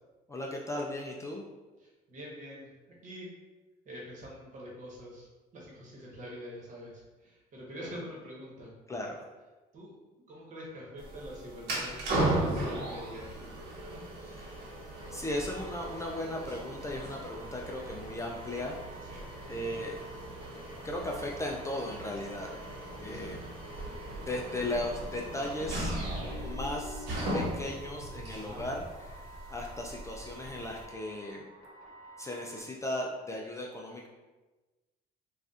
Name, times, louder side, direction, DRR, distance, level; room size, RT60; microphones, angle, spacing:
voice 1, 0.3-1.4 8.9-9.2 14.2-14.6 15.1-18.8 19.5-20.0 20.8-22.5 23.0-23.4 24.3-27.1 27.3-31.5 32.2-34.1, left 1 dB, 15° left, -1 dB, 0.3 m, -37 dB
voice 2, 1.8-2.7 3.0-3.3 3.8-8.7 9.7-10.0 10.3-13.4 19.1-19.2 23.1-23.3 28.4-28.6, equal, 50° right, -3 dB, 1.1 m, -45 dB
sound 1, 11.0-30.8, right 1 dB, 80° right, 1.0 m, -37 dB
sound 2, 15.0-32.6, right 1 dB, 55° left, 1.1 m, -52 dB
4.0 x 2.4 x 2.4 m, 1.2 s
cardioid pair, 110°, 17 cm